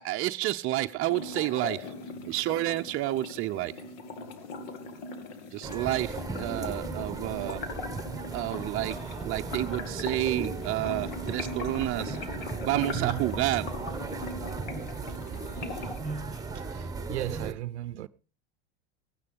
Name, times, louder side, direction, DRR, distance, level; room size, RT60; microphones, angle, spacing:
voice 1, 0.0-1.9 2.3-3.7 5.5-7.6 8.3-9.0 9.2-12.2 12.6-13.7, right 16 dB, 40° right, 0.7 m, -30 dB
sound 1, 1.1-16.0, left 3 dB, 60° left, 2.5 m, -40 dB
sound 2, 5.6-17.5, right 4 dB, 10° right, 1.5 m, -36 dB
Laughter, 8.2-17.1, left 2 dB, 80° left, 7.2 m, -54 dB
voice 2, 12.7-13.2 16.5-18.1, right 15 dB, 85° right, 0.6 m, -36 dB
16.5 x 9.6 x 5.1 m
hypercardioid pair, 95°, 34 cm